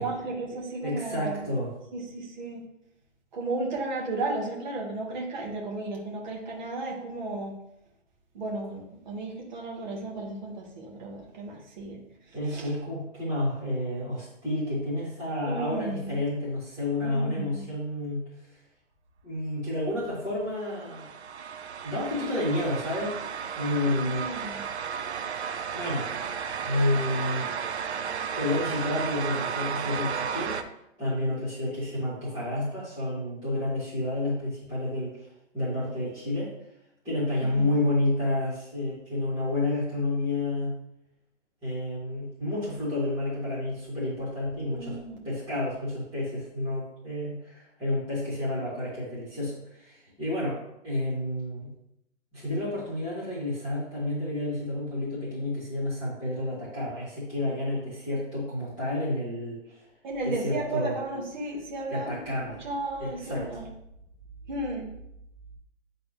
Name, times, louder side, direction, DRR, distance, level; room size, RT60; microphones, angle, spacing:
voice 1, 0.0-1.5 1.9-2.6 3.3-7.5 8.3-12.0 12.5-12.6 15.5-16.2 17.0-17.7 24.0-24.6 37.4-37.8 44.6-45.2 60.0-63.7 64.5-64.9, right 2 dB, 35° right, -2 dB, 1.9 m, -34 dB
voice 2, 0.8-1.7 12.3-18.2 19.2-21.1 21.8-23.2 23.5-24.3 25.7-26.1 26.6-27.5 28.3-30.6 31.0-35.3 35.5-36.5 37.0-40.7 41.6-45.0 45.2-51.7 52.3-59.8 60.2-61.0 61.9-62.6 63.0-63.5, left 1 dB, 5° right, -13 dB, 2.9 m, -30 dB
sound 1, 20.6-30.6, right 7 dB, 60° right, 0.7 m, -33 dB
11.0 x 4.0 x 3.4 m, 0.81 s
hypercardioid pair, 170°, 38 cm